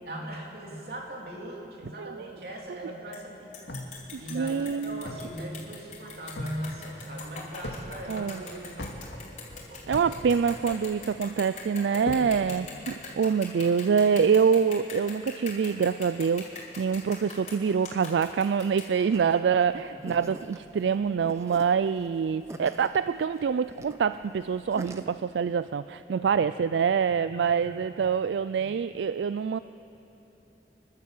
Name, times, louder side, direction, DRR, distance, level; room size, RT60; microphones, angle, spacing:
voice 1, 0.0-3.6 4.2-9.2 9.5-10.0 19.9-20.3 26.1-26.4 26.8-26.9 27.2-28.0 28.6-28.7, right 1 dB, 60° right, -1 dB, 3.5 m, -40 dB
sound 1, 3.1-3.2 3.5-19.4, left 5 dB, 40° left, 3.6 m, -43 dB
sound 2, 3.7-5.4 5.7-5.8 6.1-6.6 7.0-7.8 8.1-10.2 10.4-11.1 11.6-12.3, left 1 dB, 85° left, 2.2 m, -39 dB
voice 2, 4.1-5.0 8.1-8.4 9.9-29.6, right 6 dB, 85° right, 13 dB, 0.4 m, -26 dB
sound 3, 19.1-25.0, right 1 dB, 15° right, 0.8 m, -45 dB
28.5 x 12.0 x 7.7 m, 3.0 s
head